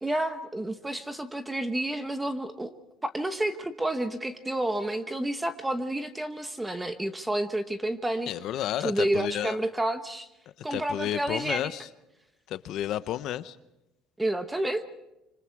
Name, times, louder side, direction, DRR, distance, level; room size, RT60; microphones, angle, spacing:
voice 1, 0.0-2.7 3.0-8.3 8.8-10.3 10.6-11.7 14.2-14.8, right 1 dB, 5° right, 9 dB, 1.0 m, -30 dB
voice 2, 8.3-9.6 10.7-11.9 12.5-13.6, left 12 dB, 50° left, 14 dB, 0.8 m, -31 dB
26.0 x 26.0 x 4.7 m, 0.93 s
cardioid pair, 175°, 0 cm